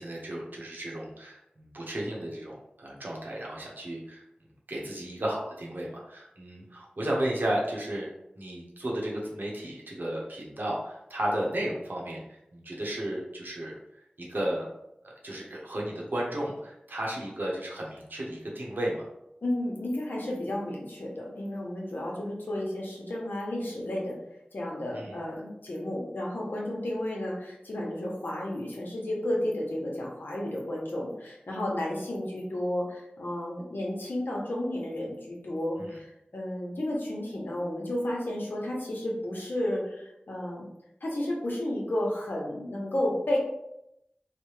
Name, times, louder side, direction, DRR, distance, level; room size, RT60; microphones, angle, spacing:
voice 1, 0.0-4.2 4.7-8.1 8.4-13.7 14.2-14.7 15.0-19.1 24.9-25.2 35.8-36.0, right 1 dB, 70° right, -3 dB, 0.9 m, -33 dB
voice 2, 19.4-24.2 24.5-40.7 41.0-43.4, left 1 dB, 75° left, -3 dB, 0.8 m, -32 dB
3.3 x 2.1 x 3.1 m, 0.84 s
wide cardioid pair, 45°, 3 cm